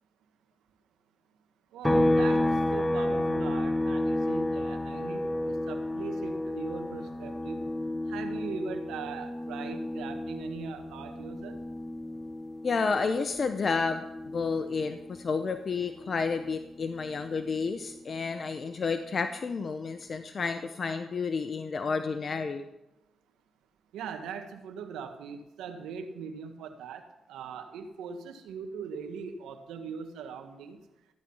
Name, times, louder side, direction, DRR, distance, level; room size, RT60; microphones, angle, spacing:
voice 1, 1.7-7.6 8.1-11.6 23.9-30.8, right 6 dB, 90° right, 6 dB, 1.7 m, -40 dB
sound 1, 1.8-15.4 15.7-17.9, left 1 dB, 10° left, 1.2 m, -31 dB
voice 2, 12.6-22.6, left 4 dB, 50° left, 8 dB, 1.0 m, -31 dB
15.5 x 10.5 x 5.6 m, 0.93 s
cardioid pair, 60°, 0 cm